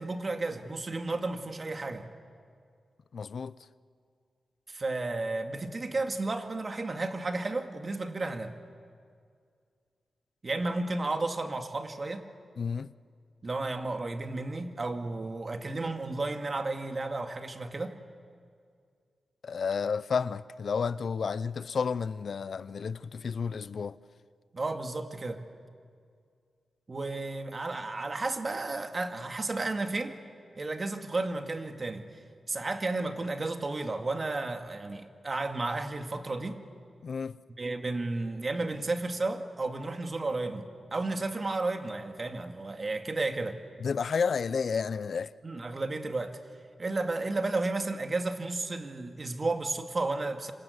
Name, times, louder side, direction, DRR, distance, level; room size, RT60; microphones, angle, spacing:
voice 1, 0.0-2.1 4.7-8.5 10.4-12.3 13.4-18.0 24.5-25.4 26.9-30.2 30.5-32.0 32.5-36.6 37.6-43.6 45.4-46.4 46.8-50.5, right 2 dB, 40° right, 2.2 m, -33 dB
voice 2, 3.1-3.5 12.6-12.9 19.4-24.0 37.0-37.4 43.8-45.3, left 5 dB, 65° left, 0.6 m, -31 dB
27.0 x 26.5 x 8.2 m
cardioid pair, 75°, 0 cm